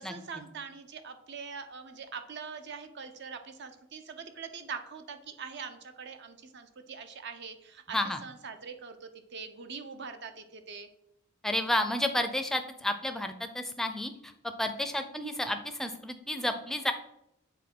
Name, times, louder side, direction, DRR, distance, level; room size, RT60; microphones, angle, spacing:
voice 1, 0.0-10.9, right 5 dB, 55° right, 8 dB, 0.7 m, -43 dB
voice 2, 11.4-14.3 14.6-16.9, left 1 dB, ahead, 7 dB, 0.5 m, -31 dB
7.3 x 3.8 x 6.0 m, 0.79 s
head